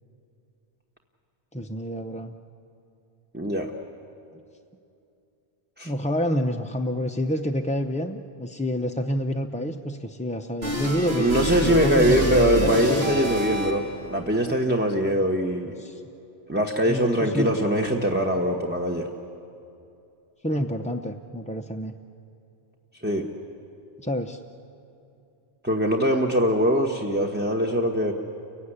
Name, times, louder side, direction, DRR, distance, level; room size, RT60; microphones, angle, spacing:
voice 1, 1.5-2.4 4.3-4.4 5.8-13.7 15.7-16.0 16.9-17.9 20.4-21.9 24.0-24.4, equal, 10° left, 3 dB, 0.4 m, -28 dB
voice 2, 3.3-3.7 5.8-5.9 11.0-15.8 16.5-19.1 23.0-23.3 25.6-28.1, equal, 10° right, 1 dB, 1.1 m, -22 dB
sound 1, 10.6-14.0, equal, 65° right, 3.0 m, -27 dB
29.0 x 16.0 x 9.9 m, 2.7 s
omnidirectional pair, 1.2 m